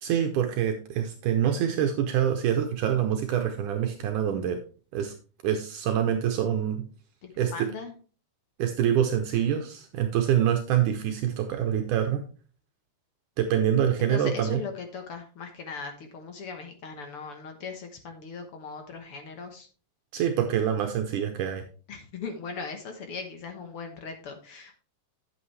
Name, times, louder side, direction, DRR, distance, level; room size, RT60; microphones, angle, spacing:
voice 1, 0.0-4.6 4.9-5.1 5.4-6.8 7.4-7.7 8.6-12.2 13.4-14.6 20.1-21.6, right 9 dB, 75° right, 5 dB, 2.3 m, -25 dB
voice 2, 7.2-7.9 14.0-19.7 21.9-24.8, left 5 dB, 60° left, 5 dB, 1.6 m, -39 dB
9.9 x 8.3 x 3.2 m, 0.37 s
omnidirectional pair, 3.8 m